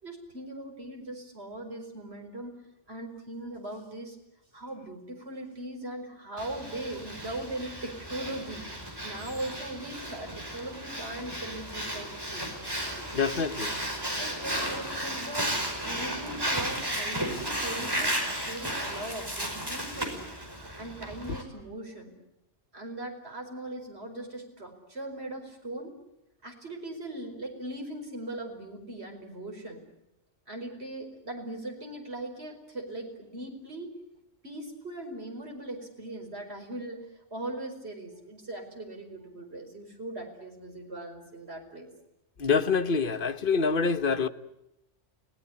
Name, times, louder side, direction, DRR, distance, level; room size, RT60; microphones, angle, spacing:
voice 1, 0.0-2.6 2.9-4.2 4.5-8.7 9.0-12.6 13.6-13.7 14.0-20.2 20.8-22.1 22.7-25.9 26.4-29.8 30.5-34.0 34.4-41.9, right 1 dB, 60° right, 5.2 m, -39 dB
Breathing, 6.4-21.4, right 1 dB, 20° right, 5.1 m, -34 dB
voice 2, 13.1-13.7 42.4-44.3, left 5 dB, 45° left, 1.3 m, -26 dB
30.0 x 18.5 x 9.8 m
omnidirectional pair, 1.3 m